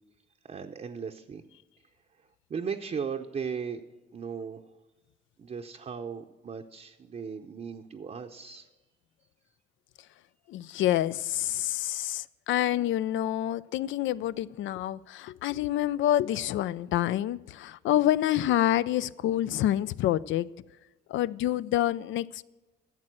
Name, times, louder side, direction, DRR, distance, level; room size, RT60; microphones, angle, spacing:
voice 1, 0.4-1.4 2.5-3.8 4.1-4.6 5.4-8.7, right 6 dB, 35° right, 3 dB, 0.7 m, -37 dB
voice 2, 10.5-20.5 21.1-22.4, left 13 dB, 75° left, 17 dB, 0.4 m, -27 dB
12.0 x 7.6 x 6.1 m, 1.2 s
cardioid pair, 90°, 20 cm